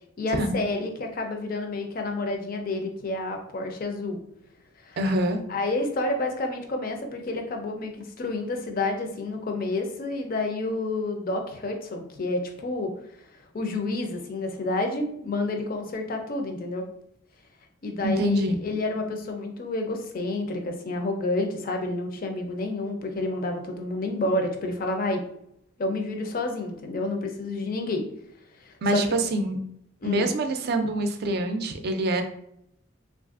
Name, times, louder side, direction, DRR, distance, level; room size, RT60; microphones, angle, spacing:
voice 1, 0.2-4.2 4.9-5.1 5.5-12.9 13.5-16.8 17.8-25.2 25.8-28.0 28.6-29.2 30.0-30.3, left 2 dB, 45° left, 4 dB, 0.5 m, -29 dB
voice 2, 5.0-5.4 18.0-18.6 28.8-29.6 30.0-32.2, equal, 55° right, 6 dB, 0.4 m, -25 dB
3.2 x 2.5 x 2.4 m, 0.74 s
head